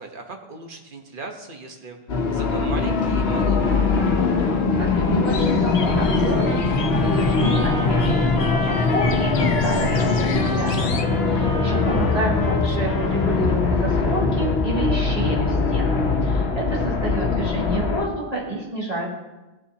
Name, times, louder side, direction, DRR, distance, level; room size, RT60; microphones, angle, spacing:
voice 1, 0.0-2.0 2.3-4.0 12.0-12.6 12.8-13.2, right 3 dB, 55° right, 3 dB, 1.3 m, -38 dB
sound 1, 2.1-18.1, left 4 dB, 75° left, 1.1 m, -21 dB
voice 2, 4.5-8.3 8.6-19.1, right 1 dB, 40° right, -5 dB, 2.5 m, -29 dB
sound 2, 5.3-11.0, left 5 dB, 60° left, 0.8 m, -36 dB
Trumpet, 5.9-13.8, left 1 dB, 20° left, 0.8 m, -34 dB
16.5 x 7.0 x 2.8 m, 1.1 s
omnidirectional pair, 1.1 m